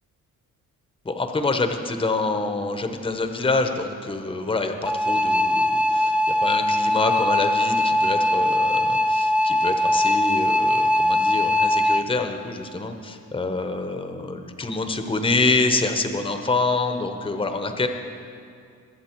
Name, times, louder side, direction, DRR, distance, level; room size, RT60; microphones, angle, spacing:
voice 1, 1.0-6.1 6.4-17.9, left 3 dB, 15° left, 6 dB, 0.9 m, -26 dB
sound 1, 4.9-12.0, left 1 dB, 5° right, 0.5 m, -21 dB
22.0 x 7.6 x 4.5 m, 2.4 s
cardioid pair, 115°, 33 cm